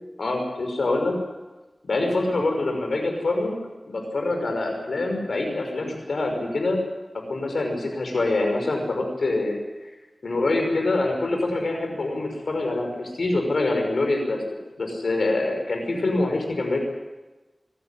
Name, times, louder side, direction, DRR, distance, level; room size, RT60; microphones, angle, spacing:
voice 1, 0.2-1.2 1.8-3.5 3.9-6.8 7.3-9.6 10.2-14.4 14.8-16.8, left 2 dB, 85° left, 3 dB, 5.7 m, -25 dB
25.0 x 12.5 x 9.9 m, 1.1 s
wide cardioid pair, 80°, 0 cm